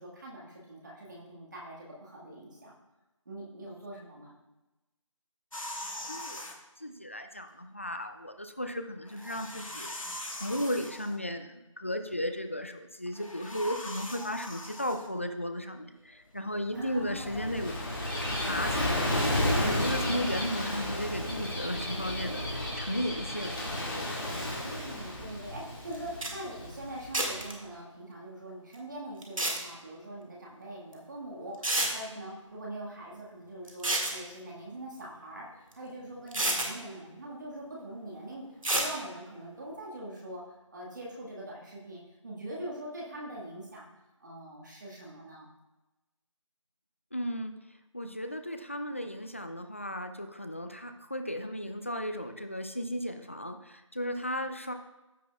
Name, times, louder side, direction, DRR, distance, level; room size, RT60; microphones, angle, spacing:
voice 1, 0.0-2.7 3.2-4.4 16.7-17.6 18.2-18.4 24.6-38.4 38.7-40.4 40.7-43.9 44.2-45.5, right 1 dB, 35° right, -4 dB, 1.7 m, -43 dB
sound 1, 5.5-6.6 9.0-11.2 13.1-15.1, left 1 dB, 85° left, 1.4 m, -41 dB
voice 2, 6.1-6.5 6.8-17.7 18.4-19.0 19.6-23.6 23.9-24.3 47.1-47.5 47.9-54.7, equal, 25° left, 7 dB, 0.4 m, -35 dB
Gull seagull / Waves surf, 16.8-27.4, left 1 dB, 40° left, 2.1 m, -32 dB
sound 2, 25.9-26.0 26.2-26.3 27.1-27.5 29.2-29.6 30.9-31.0 31.6-31.9 33.7-34.2 35.7-35.8 36.3-36.7 38.6-38.9, right 1 dB, 85° right, 1.9 m, -28 dB
15.0 x 5.9 x 2.3 m, 1.0 s
figure-of-eight pair, 170°, 17 cm